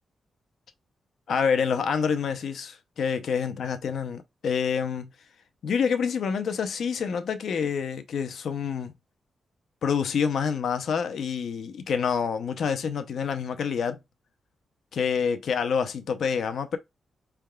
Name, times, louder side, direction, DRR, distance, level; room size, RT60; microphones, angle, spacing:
voice 1, 1.3-5.1 5.6-8.9 9.8-14.0 14.9-16.8, left 6 dB, 75° left, 0.6 m, -27 dB
4.6 x 3.5 x 2.2 m
cardioid pair, 100°, 0 cm